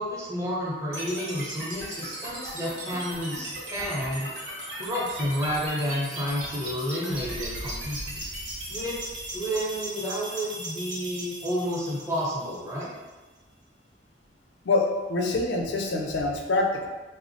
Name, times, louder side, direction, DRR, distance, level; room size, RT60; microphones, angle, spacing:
voice 1, 0.0-4.3 4.8-8.2 8.7-9.0 9.3-12.9, equal, 15° right, -7 dB, 0.7 m, -30 dB
sound 1, 0.9-12.9, right 1 dB, 80° right, 0.9 m, -37 dB
sound 2, 7.1-10.9, right 1 dB, 45° right, 0.3 m, -42 dB
voice 2, 14.6-16.9, left 2 dB, 75° left, 2 dB, 0.4 m, -25 dB
3.3 x 2.1 x 2.6 m, 1.2 s
head